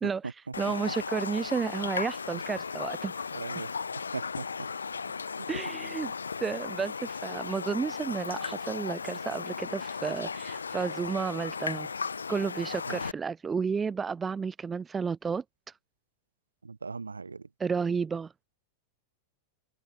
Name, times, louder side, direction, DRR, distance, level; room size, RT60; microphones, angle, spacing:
voice 1, 0.0-3.3 5.5-6.1 6.4-11.9 12.3-15.7 17.6-18.3, right 5 dB, 15° right, 0.8 m, -32 dB
Raindrop, 0.5-13.1, left 5 dB, 75° left, 1.6 m, -36 dB
voice 2, 3.3-3.7 4.1-4.4 12.9-13.1 16.6-17.4, right 4 dB, 75° right, 1.0 m, -38 dB
figure-of-eight pair, 90°, 0 cm